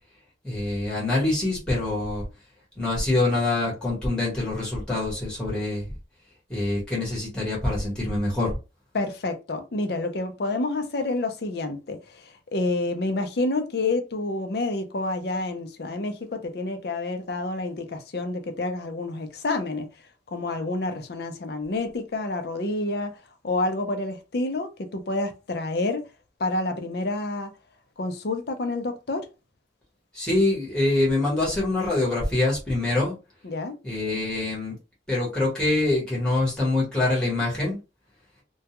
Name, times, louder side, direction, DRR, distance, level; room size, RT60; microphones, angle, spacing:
voice 1, 0.4-2.2 2.8-5.8 6.5-8.5 30.1-33.2 33.8-34.8 35.1-37.8, left 2 dB, 5° left, 1.0 m, -25 dB
voice 2, 8.9-19.9 20.3-23.2 23.4-26.1 26.4-27.5 28.0-29.3 33.4-33.8, left 2 dB, 55° left, 0.5 m, -28 dB
2.2 x 2.2 x 2.8 m
head